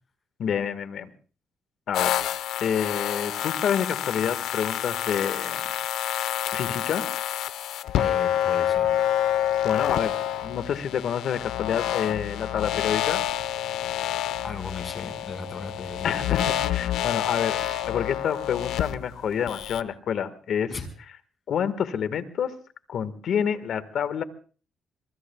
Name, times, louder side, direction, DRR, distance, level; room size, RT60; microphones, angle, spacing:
voice 1, 0.4-1.1 1.9-2.2 2.6-5.7 6.5-7.1 9.6-13.2 16.0-20.7 21.5-22.6 22.9-24.2, left 8 dB, 65° left, 13 dB, 1.5 m, -28 dB
sound 1, 1.9-19.8, left 11 dB, 85° left, 0.8 m, -28 dB
voice 2, 7.9-8.9 14.4-16.3 20.7-20.9, left 3 dB, 40° left, 7 dB, 4.9 m, -36 dB
25.5 x 23.5 x 2.3 m, 0.39 s
cardioid pair, 90°, 0 cm